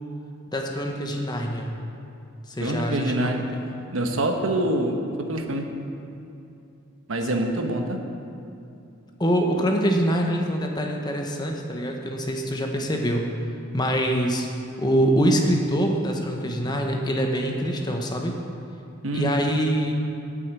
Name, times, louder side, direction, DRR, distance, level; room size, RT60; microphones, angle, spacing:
voice 1, 0.5-1.7 2.5-3.6 9.2-13.3 13.7-14.5 14.8-18.4 19.1-19.9, equal, 20° left, 2 dB, 1.0 m, -24 dB
voice 2, 2.6-3.4 3.9-4.9 5.3-5.7 7.1-8.0 19.0-19.3, right 1 dB, 75° right, 4 dB, 1.2 m, -25 dB
9.0 x 8.9 x 8.2 m, 2.7 s
head